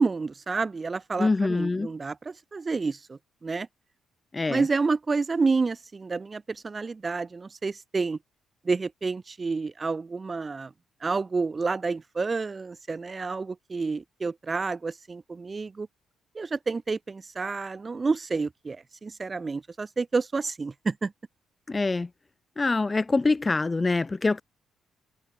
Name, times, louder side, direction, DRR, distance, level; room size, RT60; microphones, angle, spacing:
voice 1, 0.0-3.7 4.5-8.2 8.6-10.7 11.0-15.9 16.3-21.1, right 4 dB, 30° right, 3.0 m, -29 dB
voice 2, 1.2-1.9 4.3-4.6 21.7-22.1 22.6-24.4, left 3 dB, 25° left, 3.2 m, -24 dB
cardioid pair, 90°, 0 cm